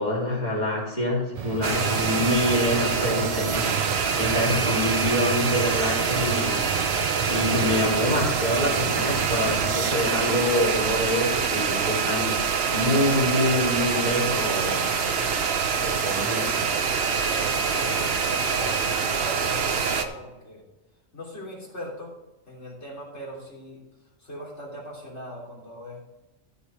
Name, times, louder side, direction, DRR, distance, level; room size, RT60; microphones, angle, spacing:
voice 1, 0.0-6.6 7.3-12.3 12.7-14.9 15.8-16.5, left 1 dB, 35° left, -5 dB, 3.6 m, -26 dB
sound 1, 1.3-10.0, right 7 dB, 85° right, 0.3 m, -34 dB
sound 2, 1.6-20.0, right 5 dB, 55° right, 1.0 m, -25 dB
voice 2, 17.2-20.6 21.1-22.1 22.5-23.8 24.2-26.0, equal, 55° left, -3 dB, 3.6 m, -40 dB
14.5 x 5.5 x 4.6 m, 1.0 s
omnidirectional pair, 1.4 m